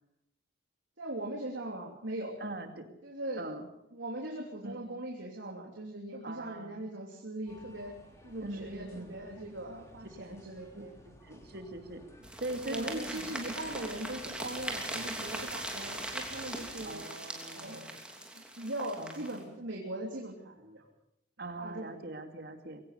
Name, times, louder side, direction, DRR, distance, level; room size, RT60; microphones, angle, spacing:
voice 1, 1.0-2.4 3.0-3.6 3.9-7.9 8.2-10.9 12.5-17.0 17.5-17.9 18.2-18.3 18.6-20.9 21.6-21.9, right 1 dB, 90° right, -1 dB, 3.2 m, -40 dB
voice 2, 2.4-3.0 3.4-3.7 4.6-4.9 6.2-6.9 8.4-9.2 10.7-12.0 12.4-13.4 13.7-13.8 16.8-18.0 19.0-19.5 21.4-22.8, right 2 dB, 60° right, 6 dB, 2.5 m, -42 dB
sound 1, 7.5-16.9, equal, 15° left, 3.9 m, -55 dB
sound 2, 12.2-19.4, right 1 dB, 5° right, 3.0 m, -40 dB
23.0 x 17.0 x 6.7 m, 0.80 s
head